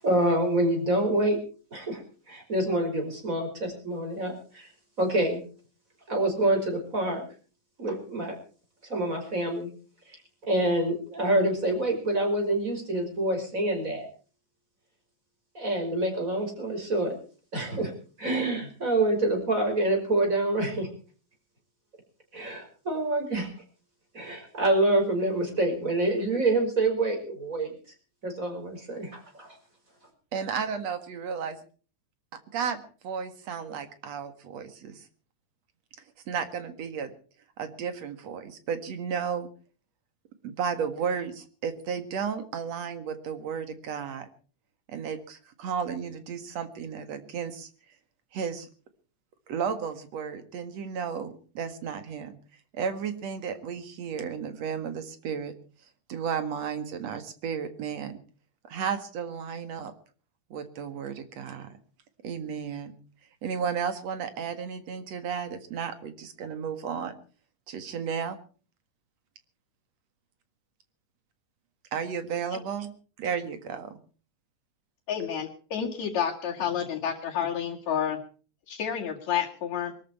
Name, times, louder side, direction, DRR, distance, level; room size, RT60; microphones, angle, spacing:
voice 1, 0.0-1.4 1.7-2.0 2.3-4.7 5.0-5.4 6.1-7.2 7.8-8.3 8.9-9.7 10.4-14.1 15.5-17.2 17.5-17.9 18.2-20.9 22.3-23.5 24.1-27.7 28.2-29.6, right 1 dB, 25° right, 3 dB, 5.7 m, -26 dB
voice 2, 30.3-31.6 32.5-35.1 36.3-37.1 37.6-39.5 40.4-44.3 44.9-47.7 48.3-48.7 49.5-52.4 52.7-55.5 56.1-58.2 58.7-59.9 60.5-61.8 62.2-62.9 63.4-67.2 67.7-68.4 71.9-73.9, right 7 dB, 60° right, 10 dB, 2.8 m, -33 dB
voice 3, 75.1-78.2 78.7-79.9, left 8 dB, 60° left, -2 dB, 3.3 m, -30 dB
23.0 x 13.0 x 4.5 m, 0.40 s
omnidirectional pair, 3.6 m